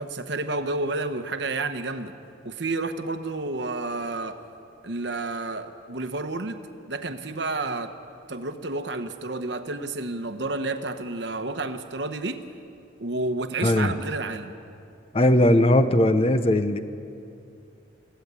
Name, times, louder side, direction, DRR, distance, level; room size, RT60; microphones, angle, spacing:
voice 1, 0.0-2.1 2.4-4.4 4.8-6.6 6.9-7.9 8.3-12.4 13.0-14.5, right 2 dB, 65° right, 8 dB, 1.0 m, -30 dB
voice 2, 13.6-13.9 15.1-16.8, left 1 dB, 30° left, 10 dB, 0.7 m, -19 dB
21.0 x 15.0 x 8.3 m, 2.5 s
head